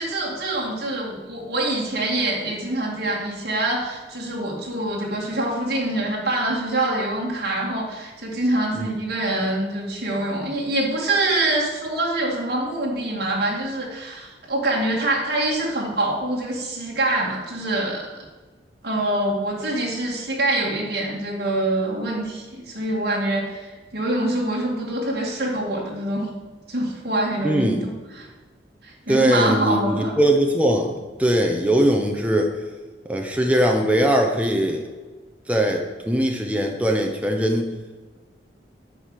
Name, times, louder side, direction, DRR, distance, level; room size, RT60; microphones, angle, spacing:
voice 1, 0.0-18.1 18.8-26.3 26.7-28.3 28.8-30.2, right 1 dB, 60° right, -3 dB, 2.2 m, -25 dB
voice 2, 27.4-27.9 29.1-32.5 33.1-34.8 35.5-37.7, equal, 10° right, 1 dB, 0.8 m, -21 dB
8.5 x 4.9 x 7.5 m, 1.3 s
head